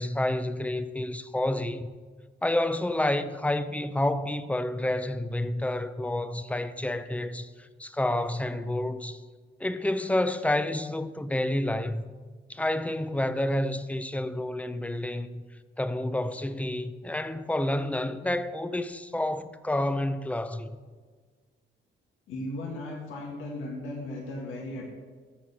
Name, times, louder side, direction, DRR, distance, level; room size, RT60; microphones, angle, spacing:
voice 1, 0.0-1.9 2.4-9.2 9.6-12.0 12.5-15.4 15.8-20.8, left 1 dB, 5° left, 0.6 m, -29 dB
voice 2, 22.3-24.9, left 1 dB, 90° left, 1.9 m, -36 dB
13.5 x 4.7 x 5.7 m
cardioid pair, 90°, 20 cm